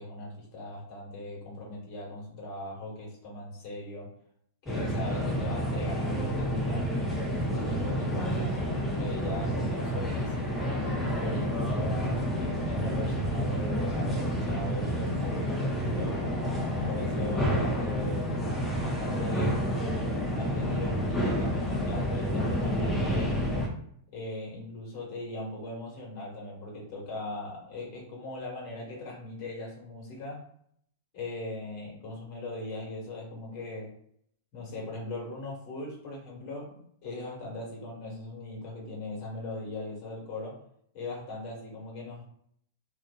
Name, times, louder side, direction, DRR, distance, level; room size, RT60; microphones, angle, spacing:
voice 1, 0.0-4.1 4.6-6.9 7.3-16.2 16.7-18.4 18.8-19.6 20.3-23.4 24.1-30.5 31.1-34.0 34.5-40.6 40.9-42.2, left 2 dB, 45° left, -3 dB, 1.2 m, -39 dB
sound 1, 4.7-23.7, equal, 5° left, 0.6 m, -29 dB
2.5 x 2.5 x 2.2 m, 0.67 s
figure-of-eight pair, 100°, 0 cm